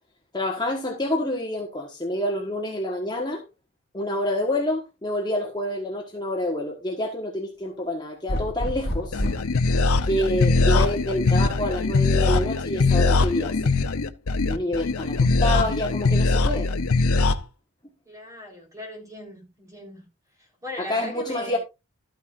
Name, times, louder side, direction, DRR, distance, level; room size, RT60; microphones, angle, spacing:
voice 1, 0.3-3.4 3.9-9.2 10.0-13.7 14.4-16.7 20.8-21.6, left 1 dB, 20° left, 1.3 m, -27 dB
sound 1, 8.3-9.6 11.2-11.8, equal, 50° left, 2.9 m, -29 dB
sound 2, 9.1-17.3, left 3 dB, 75° left, 0.7 m, -21 dB
voice 2, 18.0-20.0 20.4-21.6, left 1 dB, 15° right, 4.1 m, -39 dB
12.5 x 9.3 x 2.5 m
head